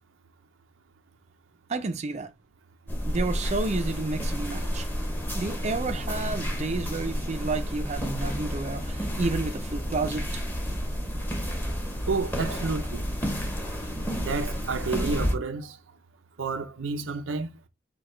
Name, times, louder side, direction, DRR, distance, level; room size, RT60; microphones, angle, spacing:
voice 1, 1.7-2.3 3.1-4.9 5.3-10.4, right 3 dB, 35° right, 0.5 m, -31 dB
sound 1, 2.9-15.4, equal, 10° left, 0.9 m, -30 dB
voice 2, 12.1-13.0 14.1-15.8 16.4-17.5, right 4 dB, 80° right, 0.6 m, -30 dB
4.8 x 2.3 x 4.3 m
head